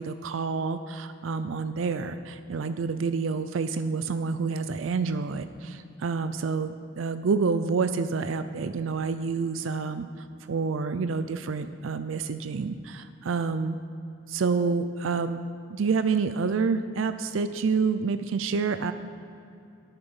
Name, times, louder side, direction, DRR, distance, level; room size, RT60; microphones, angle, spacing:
voice 1, 0.0-13.8 14.3-15.4 15.7-18.9, right 5 dB, 75° right, 10 dB, 0.4 m, -28 dB
10.0 x 8.8 x 5.5 m, 2.6 s
head